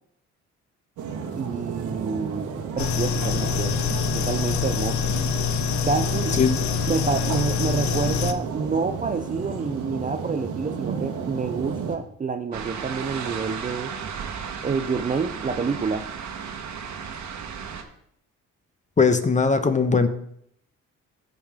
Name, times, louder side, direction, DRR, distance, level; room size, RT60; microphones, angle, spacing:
sound 1, 1.0-12.0, right 5 dB, 90° right, 1.4 m, -32 dB
voice 1, 1.3-3.8 4.1-5.1 5.9-6.4 6.9-13.9 14.6-16.0, right 5 dB, 25° right, 9 dB, 0.5 m, -28 dB
sound 2, 2.8-8.3, left 8 dB, 70° left, 0.9 m, -25 dB
sound 3, 12.5-17.8, right 6 dB, 70° right, 1.3 m, -34 dB
voice 2, 19.0-20.1, left 4 dB, 25° left, 9 dB, 1.0 m, -19 dB
15.0 x 5.3 x 3.6 m, 0.70 s
cardioid pair, 90°, 30 cm